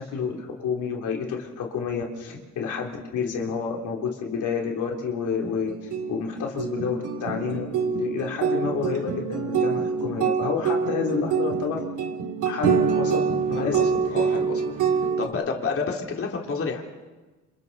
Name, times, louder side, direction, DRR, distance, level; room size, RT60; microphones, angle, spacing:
voice 1, 0.0-11.8 12.4-13.2 13.4-13.8 15.2-15.3, left 6 dB, 80° left, 0 dB, 3.4 m, -29 dB
sound 1, 5.4-15.3, right 6 dB, 85° right, 3.2 m, -26 dB
voice 2, 13.5-14.6 15.2-16.8, left 4 dB, 45° left, 1 dB, 3.3 m, -29 dB
30.0 x 27.5 x 4.2 m, 1.2 s
cardioid pair, 90°, 30 cm